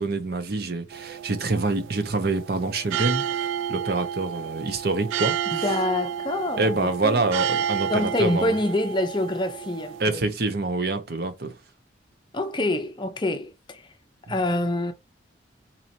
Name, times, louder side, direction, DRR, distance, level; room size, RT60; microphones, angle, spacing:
voice 1, 0.0-5.7 6.6-8.6 10.0-11.6, right 3 dB, 50° right, 0.7 m, -26 dB
sound 1, 0.9-10.0, right 9 dB, 80° right, 0.3 m, -31 dB
voice 2, 5.5-7.3 7.9-10.2 12.3-13.9 14.3-14.9, left 1 dB, 25° left, 0.6 m, -26 dB
4.2 x 2.9 x 2.6 m
head